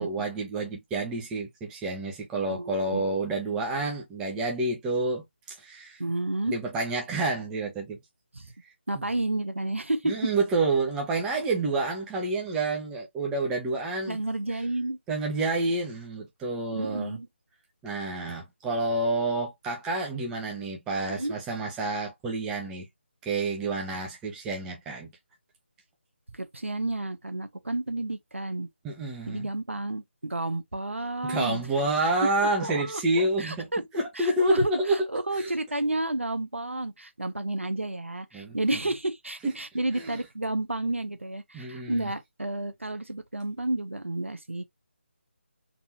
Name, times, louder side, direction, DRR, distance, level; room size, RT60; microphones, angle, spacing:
voice 1, 0.0-6.0 6.5-8.0 8.9-9.0 10.1-14.2 15.1-17.2 17.8-22.9 23.2-25.1 28.8-29.5 31.2-35.0 35.3-35.5 38.3-38.6 40.0-40.2 41.5-42.1, right 2 dB, 10° right, 0.9 m, -29 dB
voice 2, 2.5-3.2 6.0-6.5 8.3-8.5 8.9-10.1 14.1-15.0 16.7-17.3 21.1-21.3 26.3-28.7 29.3-31.7 32.0-32.1 32.6-33.8 34.1-44.6, right 2 dB, 90° right, 1.1 m, -31 dB
4.0 x 2.8 x 2.8 m
figure-of-eight pair, 155°, 7 cm